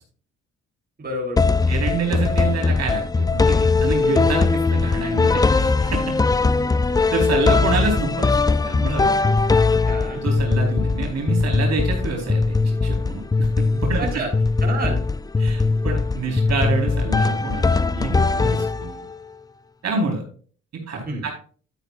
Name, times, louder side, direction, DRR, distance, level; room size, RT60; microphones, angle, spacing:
voice 1, 1.0-1.7 9.9-10.2 14.0-14.3 14.6-15.1 21.1-21.3, right 2 dB, 30° right, -1 dB, 3.8 m, -29 dB
sound 1, 1.4-19.2, left 4 dB, 15° left, 0.4 m, -20 dB
voice 2, 1.7-6.2 7.1-8.4 8.6-9.1 9.5-9.7 10.1-12.6 12.8-14.2 15.4-19.0 19.8-20.2 20.7-21.3, right 4 dB, 60° right, 0 dB, 4.2 m, -27 dB
12.5 x 9.5 x 2.5 m, 0.42 s
cardioid pair, 90°, 30 cm